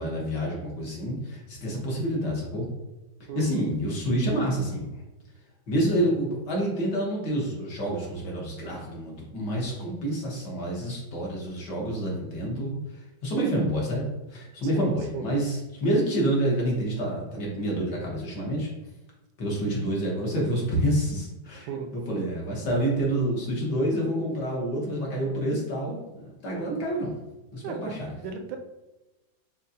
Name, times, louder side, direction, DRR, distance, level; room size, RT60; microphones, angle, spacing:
voice 1, 0.0-2.7 3.4-4.9 5.7-14.0 14.3-18.7 19.4-27.1 27.5-28.2, right 1 dB, 65° left, -3 dB, 1.8 m, -28 dB
voice 2, 3.3-3.6 14.7-15.3 21.6-21.9 27.6-28.0 28.2-28.6, right 6 dB, 85° right, 5 dB, 1.3 m, -35 dB
6.4 x 2.3 x 2.7 m, 1.1 s
omnidirectional pair, 2.0 m